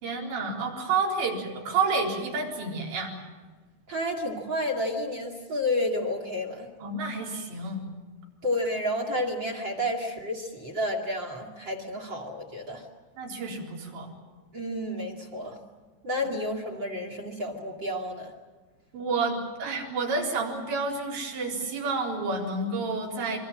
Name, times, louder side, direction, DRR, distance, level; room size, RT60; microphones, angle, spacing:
voice 1, 0.0-3.1 6.8-7.9 13.2-14.1 16.2-16.3 18.9-23.4, right 4 dB, 70° right, -1 dB, 6.2 m, -29 dB
voice 2, 3.9-6.7 8.4-12.8 14.5-15.6 16.0-18.3, left 1 dB, 35° right, 4 dB, 1.9 m, -30 dB
26.0 x 24.0 x 7.6 m, 1.4 s
omnidirectional pair, 5.4 m